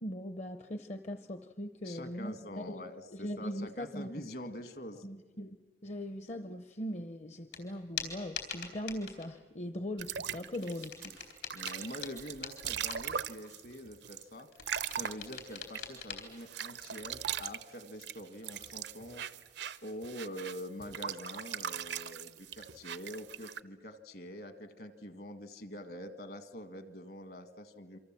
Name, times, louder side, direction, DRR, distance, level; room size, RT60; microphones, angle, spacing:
voice 1, 0.0-2.8 3.1-4.1 5.0-5.6 5.8-11.1, equal, 40° left, 9 dB, 0.7 m, -40 dB
voice 2, 1.8-5.1 11.5-19.2 19.8-28.0, equal, 60° left, 10 dB, 1.7 m, -45 dB
sound 1, 7.5-7.6 8.0-9.3 10.5-13.2 14.5-16.2, left 7 dB, 80° left, 4.1 m, -43 dB
sound 2, 10.0-16.0 16.4-23.6, right 9 dB, 80° right, 0.7 m, -40 dB
27.5 x 24.5 x 7.5 m, 1.3 s
head